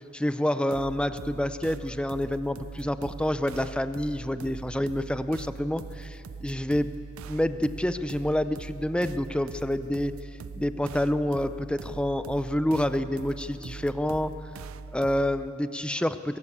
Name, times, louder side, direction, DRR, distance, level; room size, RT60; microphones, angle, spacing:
voice 1, 0.0-6.9 7.3-10.1 10.5-14.3 14.9-16.4, left 1 dB, 5° left, 11 dB, 0.4 m, -28 dB
sound 1, 0.7-15.5, right 4 dB, 80° right, 0.4 m, -42 dB
22.5 x 15.0 x 8.5 m, 2.9 s
head